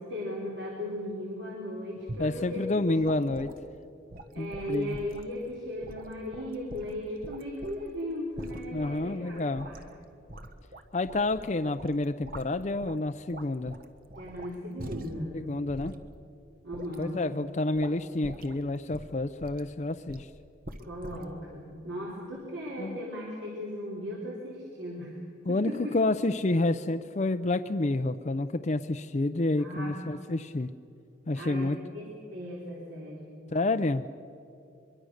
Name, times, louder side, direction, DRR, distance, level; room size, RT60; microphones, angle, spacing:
voice 1, 0.0-3.3 4.3-9.8 14.2-15.4 16.6-17.2 20.8-25.2 25.5-25.9 29.6-30.0 31.3-33.3, left 1 dB, 70° right, -4 dB, 4.2 m, -37 dB
sound 1, 2.1-2.4 3.0-3.6 4.1-5.3 5.8-7.9 8.3-8.9 9.3-9.9 10.3-11.5 11.8-13.0 13.3-15.3 15.7-16.0 16.7-17.0 17.7-18.0 18.2-18.6 18.9-19.7 20.1-20.3 20.6-21.3, right 1 dB, 50° right, 1.3 m, -44 dB
voice 2, 2.2-3.5 4.4-5.0 8.7-9.7 10.9-13.7 15.3-15.9 17.0-20.3 22.8-23.0 25.5-30.7 31.3-31.8 33.5-34.0, left 2 dB, 35° left, 8 dB, 0.5 m, -29 dB
24.5 x 23.0 x 6.5 m, 2.7 s
head